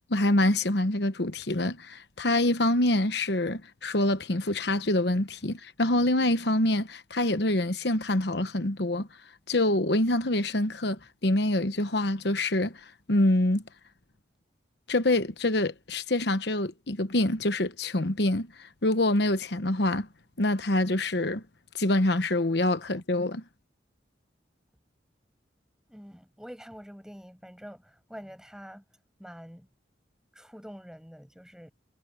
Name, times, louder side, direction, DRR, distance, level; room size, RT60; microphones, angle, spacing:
voice 1, 0.0-9.1 9.5-12.8 13.1-13.6 14.9-20.1 20.4-21.4 21.7-23.4, left 1 dB, 60° left, 1.1 m, -26 dB
voice 2, 25.9-28.8 29.2-29.7 30.3-31.7, equal, 5° right, 7.1 m, -46 dB
head